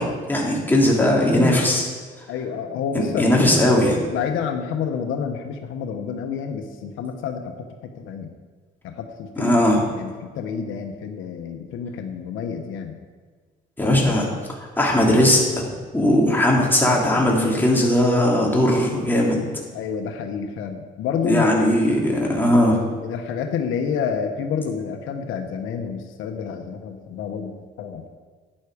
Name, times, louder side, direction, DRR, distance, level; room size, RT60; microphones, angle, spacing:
voice 1, 0.0-1.9 2.9-4.0 9.4-9.8 13.8-14.3 14.8-15.7 15.9-19.4 21.2-22.8, left 1 dB, 10° left, -3 dB, 3.4 m, -18 dB
voice 2, 2.3-3.5 4.1-7.5 8.0-8.3 8.8-9.6 10.0-13.0 19.7-21.5 21.8-22.4 22.9-28.1, left 7 dB, 90° left, 5 dB, 1.1 m, -29 dB
11.5 x 9.7 x 5.0 m, 1.5 s
cardioid pair, 90°, 20 cm